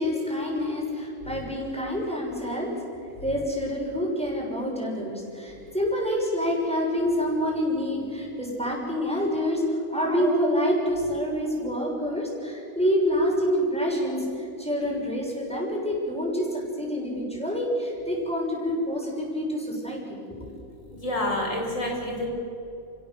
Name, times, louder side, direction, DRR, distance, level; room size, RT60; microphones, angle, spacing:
voice 1, 0.0-20.5, equal, 5° left, -3 dB, 6.6 m, -27 dB
voice 2, 20.9-22.3, left 1 dB, 55° left, 0 dB, 5.7 m, -28 dB
30.0 x 16.0 x 7.9 m, 2.8 s
omnidirectional pair, 1.5 m